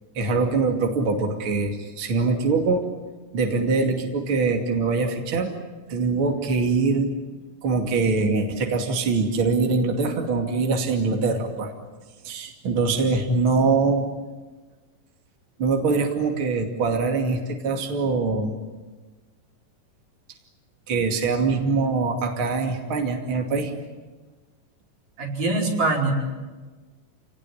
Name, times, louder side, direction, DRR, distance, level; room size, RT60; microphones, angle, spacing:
voice 1, 0.1-2.9 3.3-5.5 5.9-7.1 7.6-11.7 12.2-14.1 15.6-18.6 20.9-23.7, right 4 dB, 40° right, 3 dB, 3.1 m, -23 dB
voice 2, 25.2-26.1, right 2 dB, 90° right, -1 dB, 6.5 m, -23 dB
28.5 x 19.0 x 9.9 m, 1.3 s
omnidirectional pair, 3.8 m